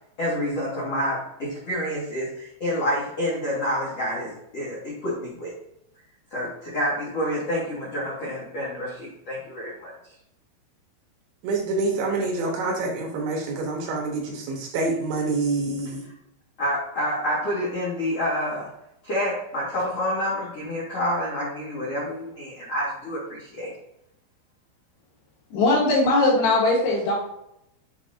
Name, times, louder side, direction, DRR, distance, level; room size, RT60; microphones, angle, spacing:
voice 1, 0.2-5.5 6.3-9.9 16.6-18.7 19.0-23.7, equal, 85° left, -7 dB, 1.3 m, -28 dB
voice 2, 11.4-16.1, right 3 dB, 75° right, 0 dB, 3.2 m, -26 dB
voice 3, 25.5-27.1, left 2 dB, 70° left, -3 dB, 2.9 m, -20 dB
7.3 x 5.3 x 2.6 m, 0.80 s
omnidirectional pair, 5.8 m